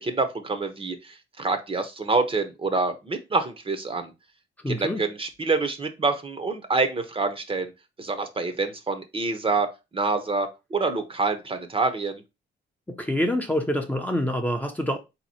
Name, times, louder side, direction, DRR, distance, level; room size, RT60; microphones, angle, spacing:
voice 1, 0.0-4.1 4.7-7.7 8.0-9.7 9.9-12.2, right 3 dB, 25° right, 0.8 m, -26 dB
voice 2, 4.6-5.0 12.9-15.0, left 1 dB, 10° left, 0.7 m, -26 dB
4.1 x 2.9 x 4.1 m
cardioid pair, 90°, 20 cm